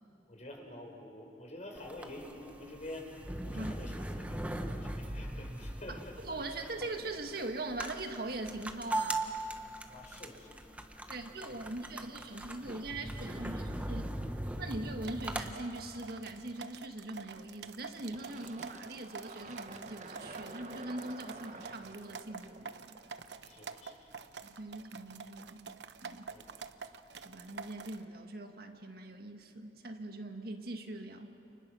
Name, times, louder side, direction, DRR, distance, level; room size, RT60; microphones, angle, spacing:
voice 1, 0.3-6.2 9.9-10.6 23.4-24.1 26.3-26.4, left 1 dB, 40° left, 2 dB, 4.4 m, -48 dB
sound 1, 1.8-15.5, right 1 dB, 10° right, 1.3 m, -40 dB
voice 2, 6.3-9.4 11.1-14.1 14.6-23.0 24.4-26.3 27.2-31.4, right 2 dB, 60° right, 5 dB, 1.7 m, -42 dB
sound 2, 15.0-28.1, right 5 dB, 80° right, 0.9 m, -48 dB
Fill (with liquid), 18.1-23.5, right 3 dB, 40° right, 1.4 m, -49 dB
29.5 x 29.5 x 6.2 m, 2.8 s
head